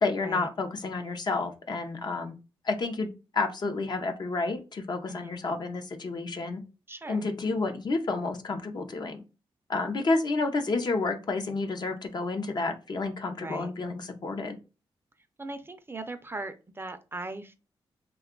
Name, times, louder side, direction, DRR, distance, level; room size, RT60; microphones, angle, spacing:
voice 1, 0.0-2.3 2.6-6.6 7.1-9.2 9.7-14.6, left 3 dB, 50° left, 6 dB, 0.6 m, -30 dB
voice 2, 6.9-7.3 13.4-13.7 15.4-17.5, right 2 dB, 25° right, 9 dB, 0.4 m, -39 dB
2.9 x 2.3 x 3.6 m, 0.31 s
cardioid pair, 75°, 9 cm